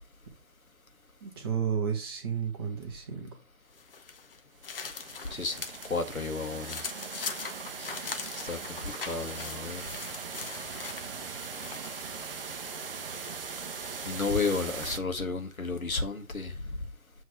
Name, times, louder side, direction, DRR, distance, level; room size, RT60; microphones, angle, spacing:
voice 1, 1.2-3.3, right 7 dB, 15° right, 1.0 m, -32 dB
sound 1, 3.7-5.9 6.3-12.1, left 5 dB, 40° left, 0.8 m, -41 dB
sound 2, 4.6-15.0, right 5 dB, 40° right, 0.7 m, -40 dB
voice 2, 5.9-6.8 7.8-8.1 8.4-8.6 9.1-9.8 14.1-16.5, left 4 dB, 75° left, 1.5 m, -32 dB
7.6 x 3.4 x 5.0 m
figure-of-eight pair, 140°, 42 cm